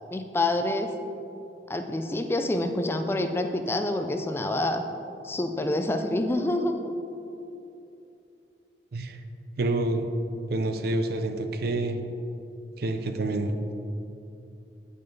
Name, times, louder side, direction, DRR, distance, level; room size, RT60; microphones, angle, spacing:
voice 1, 0.1-0.9 1.7-4.8 5.2-6.8, left 1 dB, 15° left, 6 dB, 0.3 m, -27 dB
voice 2, 9.6-10.1 10.5-12.0 12.8-13.7, right 2 dB, 60° right, 7 dB, 0.5 m, -28 dB
8.9 x 5.4 x 3.9 m, 2.8 s
head